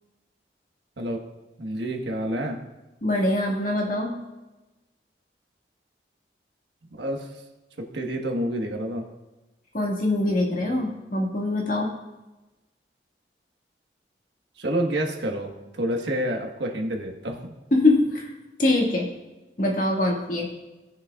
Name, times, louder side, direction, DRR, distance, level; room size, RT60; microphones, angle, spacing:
voice 1, 1.6-2.6 7.0-7.3 7.8-9.0 14.6-17.4, right 1 dB, 80° right, 2 dB, 1.4 m, -28 dB
voice 2, 3.0-4.2 9.7-11.9 17.7-18.3 18.6-19.1 19.6-20.5, left 2 dB, 50° left, -1 dB, 1.8 m, -23 dB
18.0 x 6.4 x 2.4 m, 1.1 s
head